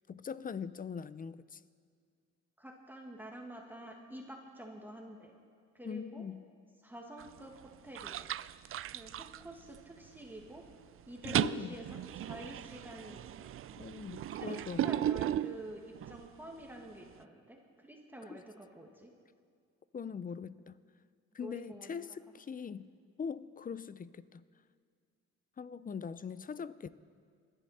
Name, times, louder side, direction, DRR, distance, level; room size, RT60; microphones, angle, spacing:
voice 1, 0.1-1.6 5.8-6.4 11.2-11.8 13.8-14.9 19.9-20.8 21.3-22.9 23.2-24.4 25.6-26.9, left 6 dB, 30° left, 16 dB, 0.5 m, -41 dB
voice 2, 2.6-5.4 5.7-6.3 6.8-8.3 8.9-10.6 11.1-13.5 14.3-19.1 21.4-22.1, right 1 dB, 5° right, 0 dB, 1.9 m, -48 dB
sound 1, 7.2-7.6 7.9-10.1 10.4-10.7 11.0-16.3, right 11 dB, 45° right, 0.4 m, -36 dB
27.0 x 10.5 x 4.3 m, 2.2 s
cardioid pair, 90°, 30 cm